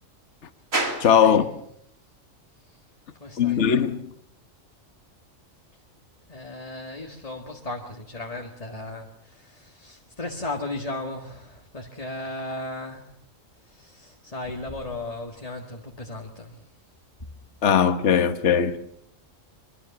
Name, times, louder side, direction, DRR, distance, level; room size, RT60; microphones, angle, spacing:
sound 1, 0.7-18.2, right 2 dB, 85° right, 3.9 m, -42 dB
voice 1, 1.0-1.4 3.4-4.1 17.6-18.8, left 8 dB, 60° left, 1.5 m, -19 dB
voice 2, 3.1-3.7 6.3-13.1 13.6-16.7 17.2-17.3, left 2 dB, 30° left, 2.0 m, -36 dB
24.0 x 23.5 x 7.2 m
omnidirectional pair, 1.4 m